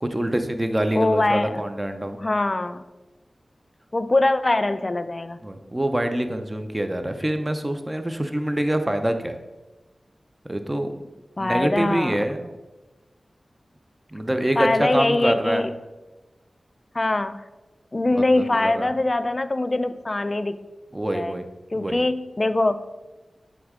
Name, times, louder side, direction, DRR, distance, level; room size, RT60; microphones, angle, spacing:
voice 1, 0.0-2.2 5.4-9.4 10.4-10.9 11.4-12.5 14.1-15.7 18.2-18.3 18.5-18.9 20.9-21.4 21.7-22.0, right 1 dB, 20° right, 7 dB, 0.5 m, -25 dB
voice 2, 0.9-1.6 2.2-2.8 3.9-5.4 11.4-12.1 14.6-15.7 16.9-17.4 17.9-20.6 21.1-21.4 21.7-22.8, left 2 dB, 35° left, 12 dB, 0.3 m, -23 dB
8.3 x 3.6 x 3.6 m, 1.1 s
wide cardioid pair, 85°, 0 cm